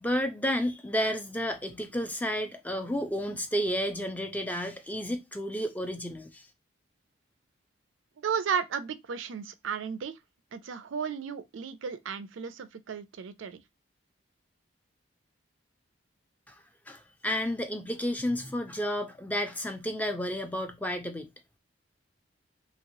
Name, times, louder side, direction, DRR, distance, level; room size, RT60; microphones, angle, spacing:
voice 1, 0.0-6.5 16.5-16.6 16.9-21.3, equal, 10° left, 0.4 m, -31 dB
voice 2, 8.2-10.2 10.5-13.6, right 6 dB, 80° right, 0.4 m, -34 dB
3.1 x 2.9 x 2.6 m
head